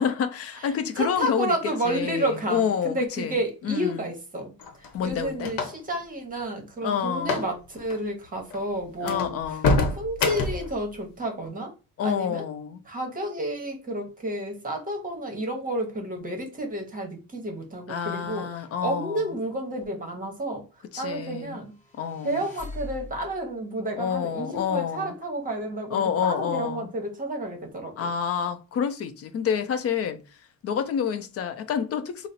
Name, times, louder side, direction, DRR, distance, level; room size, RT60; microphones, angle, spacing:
voice 1, 0.0-1.6 1.8-4.0 4.9-5.5 6.8-7.4 9.0-9.8 12.0-12.8 17.9-19.3 20.9-21.6 22.0-22.4 23.9-25.1 25.9-26.9 28.0-30.2 30.6-32.3, left 7 dB, 45° left, 0.5 m, -28 dB
voice 2, 0.6-4.5 4.8-9.4 9.9-11.7 12.0-12.4 12.9-18.5 18.8-20.6 21.0-21.7 22.2-27.9, right 1 dB, 25° right, 0.9 m, -31 dB
sound 1, 4.6-6.0 7.2-7.5 7.8-8.0 8.5-8.6 9.0-10.7, left 3 dB, 70° left, 0.9 m, -26 dB
sound 2, 21.7-23.5, left 2 dB, 20° left, 1.2 m, -41 dB
3.9 x 2.0 x 4.0 m
cardioid pair, 160°, 35 cm